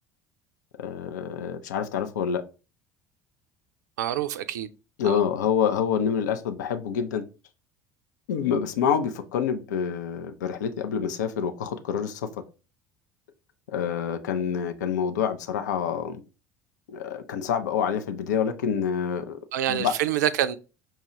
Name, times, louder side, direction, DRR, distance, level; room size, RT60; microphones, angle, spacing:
voice 1, 0.8-2.4 5.0-7.2 8.3-12.3 13.7-16.2 16.9-19.4 19.7-19.9, left 7 dB, 70° left, 0.4 m, -27 dB
voice 2, 4.0-4.7 5.0-5.2 19.5-20.6, right 11 dB, 65° right, 0.3 m, -26 dB
5.6 x 2.3 x 2.9 m
figure-of-eight pair, 65°, 10 cm